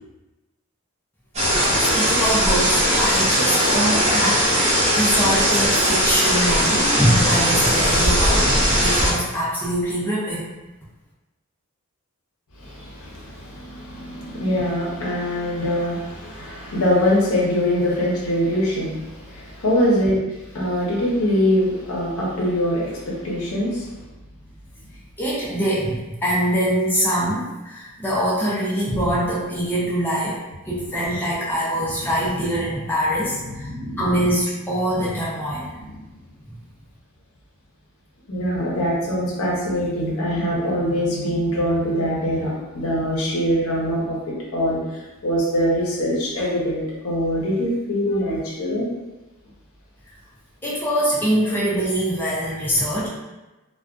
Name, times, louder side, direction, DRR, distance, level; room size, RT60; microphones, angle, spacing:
sound 1, 1.3-9.1, equal, 30° right, 0.7 m, -19 dB
voice 1, 1.7-10.5 25.2-30.4 30.7-33.7 34.0-35.7 50.6-53.1, equal, 10° left, -8 dB, 0.4 m, -23 dB
voice 2, 12.6-20.2 20.5-23.9 31.9-32.1 33.5-34.1 35.5-35.6 35.9-36.0 38.3-48.9, equal, 75° left, -5 dB, 0.7 m, -23 dB
2.4 x 2.2 x 2.3 m, 1.1 s
head